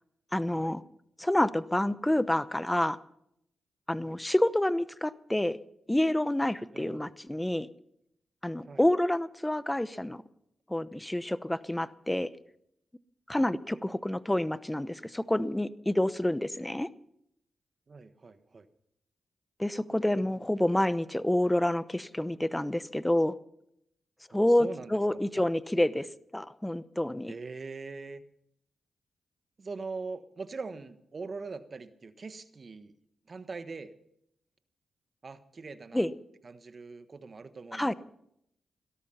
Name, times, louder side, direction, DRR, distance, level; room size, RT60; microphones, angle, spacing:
voice 1, 0.3-0.8 1.2-3.0 3.9-5.6 5.9-7.7 8.4-10.2 10.7-12.3 13.3-16.9 19.6-23.4 24.3-26.1 26.3-27.3 35.9-36.1 37.7-37.9, left 1 dB, 10° left, 16 dB, 0.8 m, -28 dB
voice 2, 6.7-7.1 8.7-8.8 13.4-13.5 17.9-18.7 24.3-25.2 27.3-28.2 29.6-32.9 33.3-33.9 35.2-36.1 36.4-37.9, right 4 dB, 45° right, 11 dB, 1.3 m, -42 dB
17.0 x 13.0 x 5.7 m, 0.75 s
cardioid pair, 60°, 0 cm